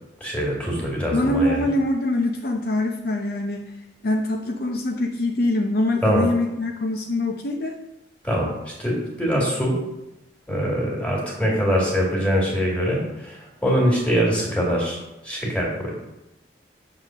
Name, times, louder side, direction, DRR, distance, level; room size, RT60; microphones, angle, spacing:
voice 1, 0.2-1.6 6.0-6.3 8.2-9.8 10.5-15.0 15.2-15.9, equal, 10° left, -3 dB, 1.9 m, -23 dB
voice 2, 1.1-3.7 4.0-7.8, left 1 dB, 55° left, 2 dB, 0.6 m, -24 dB
6.6 x 3.8 x 6.2 m, 0.94 s
head